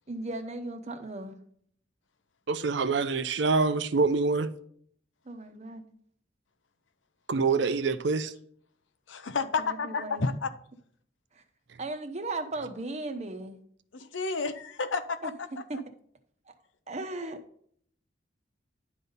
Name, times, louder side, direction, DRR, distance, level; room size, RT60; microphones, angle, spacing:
voice 1, 0.1-1.4 5.2-5.8 9.6-10.2 11.3-11.4 11.8-13.6 15.2-15.3 15.7-15.8 16.5-16.6 16.9-17.4, right 2 dB, 35° right, 0.9 m, -36 dB
voice 2, 2.5-4.5 7.3-8.3, right 4 dB, 70° right, 0.6 m, -25 dB
voice 3, 9.1-10.5 13.9-15.3, left 4 dB, 85° left, 0.8 m, -31 dB
10.5 x 4.0 x 5.4 m
head